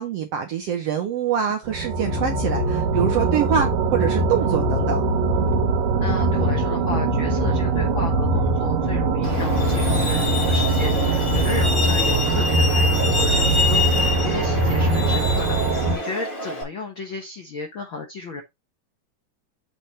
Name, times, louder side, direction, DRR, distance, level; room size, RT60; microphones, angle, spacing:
voice 1, 0.0-5.0, right 8 dB, 70° right, 1.5 m, -25 dB
sound 1, 1.7-16.0, right 3 dB, 90° right, 2.8 m, -22 dB
Bass guitar, 2.1-11.7, left 17 dB, 90° left, 1.6 m, -30 dB
voice 2, 6.0-18.4, left 3 dB, 70° left, 1.2 m, -33 dB
Truck, 9.2-16.6, left 3 dB, 25° left, 1.0 m, -26 dB
7.0 x 3.0 x 5.5 m
omnidirectional pair, 3.9 m